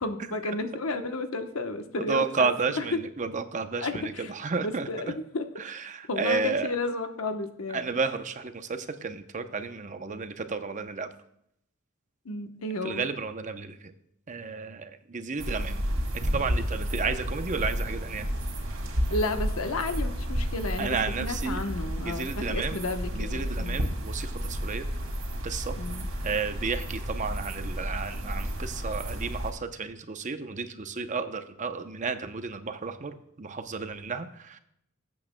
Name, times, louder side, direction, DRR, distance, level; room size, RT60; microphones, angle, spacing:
voice 1, 0.0-2.5 2.7-3.0 3.8-4.3 4.6-5.4 6.1-7.8 12.2-13.1 19.1-23.8 25.8-26.1, left 2 dB, 85° left, 7 dB, 1.0 m, -32 dB
voice 2, 2.0-4.9 5.6-6.7 7.7-11.1 12.8-13.9 14.3-15.8 16.2-18.3 20.8-21.6 22.0-22.8 23.1-24.9 25.4-25.8 26.2-34.6, right 4 dB, 35° right, 9 dB, 0.7 m, -32 dB
sound 1, 15.4-29.5, equal, 70° right, 2.2 m, -31 dB
19.5 x 8.5 x 2.2 m, 0.75 s
head